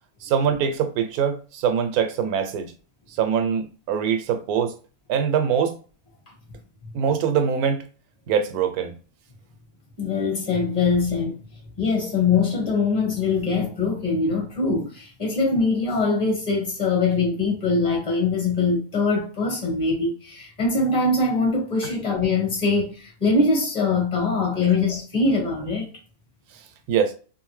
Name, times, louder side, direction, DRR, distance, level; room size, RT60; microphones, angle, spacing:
voice 1, 0.2-2.7 3.1-4.7 5.1-5.8 6.9-7.8 8.3-8.9 21.8-21.9 26.5-26.6 26.9-27.1, right 7 dB, 85° right, 1.1 m, -23 dB
voice 2, 10.0-11.3 11.8-25.9, left 3 dB, 30° left, 1.1 m, -22 dB
2.7 x 2.4 x 3.1 m
omnidirectional pair, 1.5 m